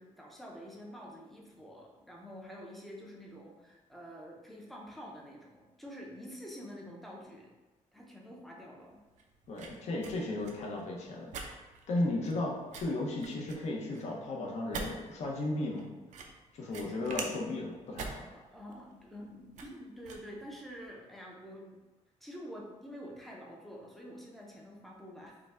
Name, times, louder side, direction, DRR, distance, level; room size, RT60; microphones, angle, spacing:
voice 1, 0.0-7.5 7.9-9.0 16.6-16.8 18.3-21.8 22.2-25.4, equal, ahead, -2 dB, 0.6 m, -48 dB
sound 1, 8.8-20.9, right 4 dB, 65° right, 0.5 m, -46 dB
voice 2, 9.5-11.5 11.9-15.9 16.5-18.2, left 2 dB, 55° left, -1 dB, 0.8 m, -35 dB
4.8 x 2.2 x 3.6 m, 1.2 s
wide cardioid pair, 175°, 14 cm